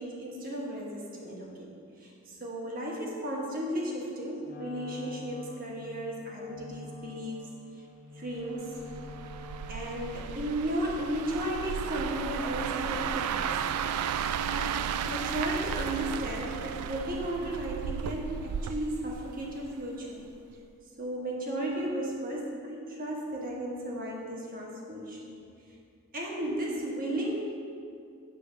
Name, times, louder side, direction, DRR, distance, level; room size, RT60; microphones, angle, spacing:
voice 1, 0.0-7.5 8.2-8.7 9.7-13.6 14.5-14.7 15.1-20.2 21.0-25.4 26.1-27.4, right 1 dB, 40° right, -2 dB, 1.2 m, -34 dB
Wind instrument woodwind instrument, 4.4-10.4, left 3 dB, 40° left, 0.6 m, -46 dB
sound 1, 8.8-19.9 20.2-20.5, right 7 dB, 85° right, 0.3 m, -34 dB
8.4 x 3.4 x 6.0 m, 2.5 s
head